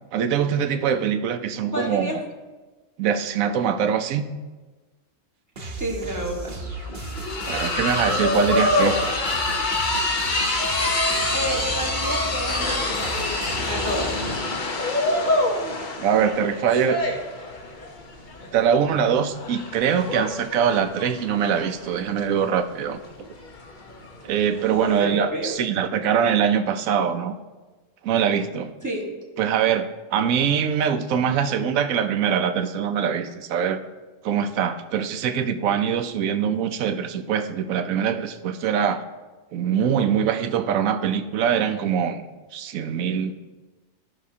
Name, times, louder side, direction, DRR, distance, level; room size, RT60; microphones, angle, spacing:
voice 1, 0.1-2.1 3.0-4.3 7.5-9.0 16.0-17.0 18.5-23.0 24.2-27.3 28.0-28.7 29.4-33.8 34.2-39.0 39.5-42.2 42.5-43.3, right 8 dB, 85° right, 9 dB, 1.1 m, -23 dB
voice 2, 1.7-2.2 5.8-6.6 11.3-13.3 13.6-14.2 24.8-25.5 28.8-29.1, equal, 15° right, -1 dB, 1.4 m, -30 dB
sound 1, 5.6-14.4, right 2 dB, 45° right, 1.0 m, -35 dB
sound 2, 5.8-5.9 6.2-25.0, left 2 dB, 40° left, 1.0 m, -26 dB
15.0 x 5.7 x 2.8 m, 1.3 s
omnidirectional pair, 1.4 m